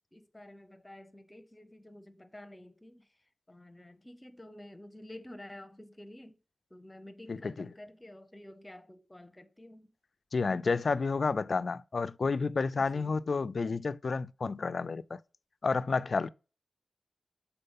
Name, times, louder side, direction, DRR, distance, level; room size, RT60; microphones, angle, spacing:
voice 1, 0.1-6.4 6.7-9.9 12.7-13.1, left 1 dB, 15° left, 0.7 m, -50 dB
voice 2, 7.3-7.7 10.3-15.2 15.6-16.3, left 4 dB, 55° left, 0.3 m, -30 dB
6.7 x 4.2 x 3.6 m
wide cardioid pair, 115°, 0 cm